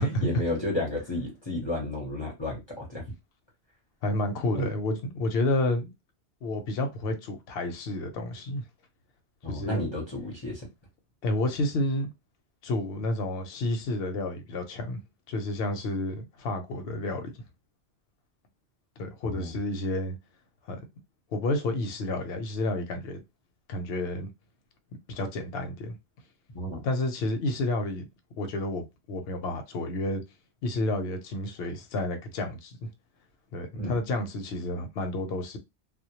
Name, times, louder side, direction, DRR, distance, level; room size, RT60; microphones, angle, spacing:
voice 1, 0.0-3.0 4.5-4.7 9.4-10.7 19.2-19.5 26.5-26.8 33.7-34.0, left 1 dB, 30° left, 0.6 m, -32 dB
voice 2, 4.0-5.9 6.4-8.6 9.5-9.8 11.2-12.1 12.6-15.0 15.3-17.3 19.0-20.2 20.7-20.8 21.3-23.2 23.7-24.3 25.1-26.0 26.8-28.1 28.4-30.2 30.6-32.9 33.5-35.6, left 1 dB, 70° left, 0.8 m, -30 dB
2.1 x 2.1 x 2.8 m
omnidirectional pair, 1.2 m